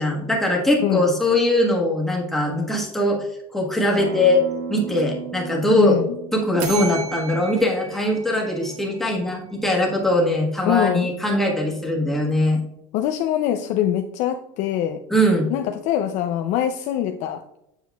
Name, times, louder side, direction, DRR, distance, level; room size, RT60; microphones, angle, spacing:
voice 1, 0.0-3.3 3.5-4.4 4.7-6.0 6.3-12.6 15.1-15.5, left 1 dB, ahead, -2 dB, 1.3 m, -21 dB
Acoustic guitar, 3.9-9.1, right 6 dB, 45° right, 1.0 m, -36 dB
voice 2, 5.7-6.2 10.6-11.1 12.9-15.0 15.5-17.4, left 11 dB, 45° left, 5 dB, 0.4 m, -23 dB
sound 1, 6.6-9.3, right 5 dB, 85° right, 1.5 m, -35 dB
8.1 x 6.7 x 2.3 m, 0.81 s
cardioid pair, 155°, 17 cm